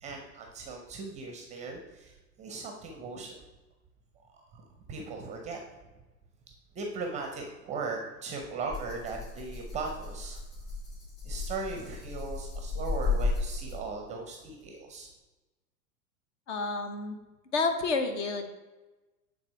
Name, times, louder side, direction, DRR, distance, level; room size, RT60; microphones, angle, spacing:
voice 1, 0.0-3.4 4.5-4.6 4.9-5.6 6.7-10.4 11.2-15.1, right 4 dB, 15° right, 2 dB, 0.6 m, -38 dB
Rattle (instrument), 8.7-14.0, left 3 dB, 25° left, 2.3 m, -34 dB
voice 2, 16.5-17.2 17.5-18.5, left 3 dB, 45° left, 7 dB, 0.9 m, -29 dB
8.5 x 3.7 x 4.5 m, 1.1 s
figure-of-eight pair, 95°, 47 cm